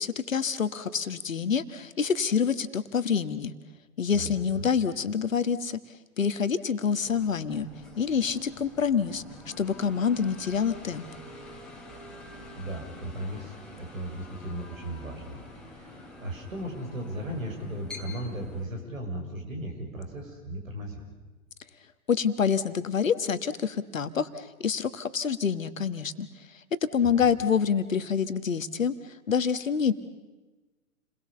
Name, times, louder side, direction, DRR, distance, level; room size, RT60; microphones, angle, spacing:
voice 1, 0.0-3.5 4.0-5.8 6.2-7.7 8.0-9.2 9.6-11.1 22.1-26.3 26.9-28.9 29.3-29.9, left 6 dB, 65° left, 12 dB, 1.5 m, -27 dB
voice 2, 4.1-4.7 12.6-21.1 27.0-27.2, right 1 dB, 65° right, 3 dB, 6.8 m, -37 dB
sound 1, 7.0-18.6, left 1 dB, ahead, 3.1 m, -46 dB
30.0 x 21.5 x 7.0 m, 1.2 s
figure-of-eight pair, 120°, 43 cm